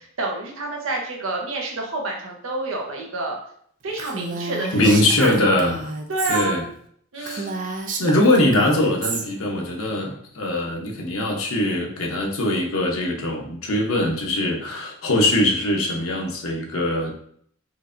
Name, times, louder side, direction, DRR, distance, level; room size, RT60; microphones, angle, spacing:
voice 1, 0.2-3.4 3.8-5.5 6.1-6.7 7.1-7.5, right 2 dB, 75° right, 0 dB, 0.8 m, -28 dB
Female speech woman speaking, 4.0-6.5 6.8-6.9 7.2-9.2, right 4 dB, 40° right, 0.4 m, -31 dB
voice 2, 4.7-5.9 6.3-6.6 7.2-7.5 8.0-17.1, left 1 dB, 85° left, 0 dB, 0.8 m, -21 dB
4.6 x 2.6 x 2.5 m, 0.63 s
head